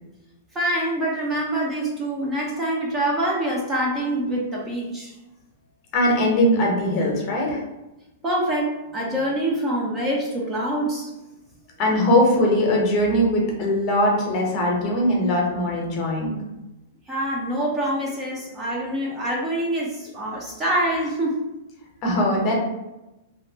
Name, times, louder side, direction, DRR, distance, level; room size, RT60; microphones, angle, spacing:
voice 1, 0.5-5.1 8.2-11.1 17.1-21.4, right 1 dB, 15° right, -3 dB, 0.5 m, -25 dB
voice 2, 5.9-7.6 11.8-16.4 22.0-22.5, left 1 dB, 35° left, -1 dB, 0.8 m, -20 dB
2.8 x 2.6 x 2.7 m, 0.98 s
hypercardioid pair, 155°, 0 cm